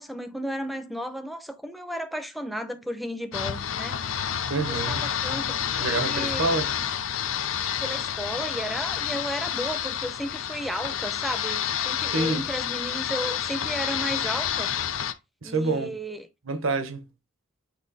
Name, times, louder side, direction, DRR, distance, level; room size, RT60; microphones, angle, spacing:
voice 1, 0.0-4.0 4.9-6.6 7.8-14.8 15.4-16.3, equal, ahead, 0.7 m, -34 dB
sound 1, 3.3-15.1, left 9 dB, 75° left, 0.6 m, -29 dB
voice 2, 4.5-5.0 5.8-6.7 12.1-12.5 15.4-16.0 16.4-17.1, right 3 dB, 75° right, 1.0 m, -27 dB
8.5 x 2.9 x 4.1 m
head